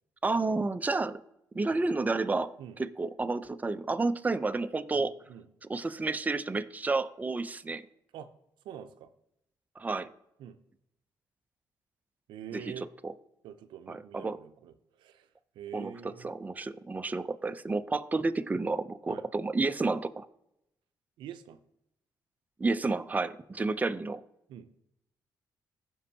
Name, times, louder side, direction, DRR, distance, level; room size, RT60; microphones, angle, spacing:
voice 1, 0.2-1.2 1.5-5.1 5.7-7.8 9.8-10.1 12.5-12.6 13.0-13.1 13.9-14.4 15.7-15.9 16.2-20.3 22.6-24.2, right 3 dB, 20° right, 11 dB, 0.5 m, -30 dB
voice 2, 5.0-5.5 8.1-8.3 8.6-9.1 10.4-10.6 12.3-12.9 13.4-15.3 15.6-16.3 19.1-19.2 21.2-21.6 24.5-24.7, right 9 dB, 85° right, 10 dB, 0.6 m, -45 dB
15.5 x 5.4 x 2.8 m, 0.81 s
cardioid pair, 70°, 8 cm